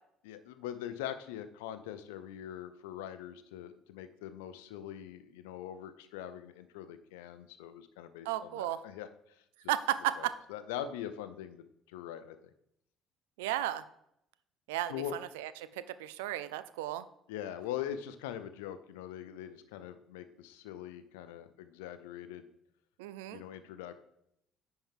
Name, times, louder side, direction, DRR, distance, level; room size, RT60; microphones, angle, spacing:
voice 1, 0.2-9.4 10.2-12.5 14.9-15.2 17.3-22.5 23.3-24.0, left 10 dB, 80° left, 11 dB, 0.5 m, -42 dB
voice 2, 8.3-8.8 9.7-10.3 13.4-13.8 14.7-14.9 15.4-17.1 23.0-23.4, right 13 dB, 80° right, 15 dB, 0.4 m, -34 dB
10.0 x 4.5 x 3.6 m, 0.78 s
hypercardioid pair, 60°, 0 cm